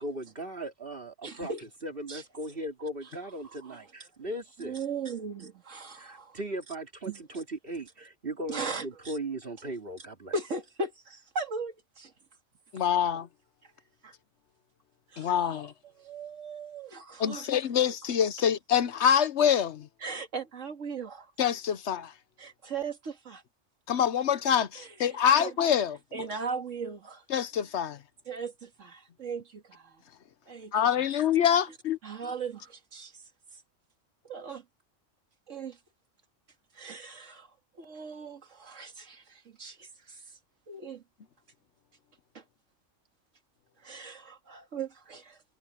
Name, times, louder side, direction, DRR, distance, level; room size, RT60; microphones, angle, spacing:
voice 1, 0.0-1.5 1.8-4.7 5.9-10.3, right 1 dB, 45° right, 3.2 m, -38 dB
voice 2, 1.2-1.6 2.1-2.2 3.4-4.1 4.6-6.4 7.1-7.4 8.5-9.2 10.3-12.1 13.6-13.7 14.0-14.1 15.1-15.7 16.0-17.5 20.0-21.3 22.4-23.4 24.7-25.5 26.1-27.2 28.3-30.0 30.5-31.1 32.0-33.2 33.5-33.6 34.2-34.6 35.5-35.8 36.7-40.4 40.7-41.0 42.3-42.4 43.8-45.4, right 4 dB, 85° right, 2.4 m, -38 dB
voice 3, 12.7-13.3 15.2-15.7 17.2-19.9 21.4-22.1 23.9-26.0 27.3-28.0 30.7-32.0, left 8 dB, 70° left, 1.1 m, -25 dB
omnidirectional pair, 1.3 m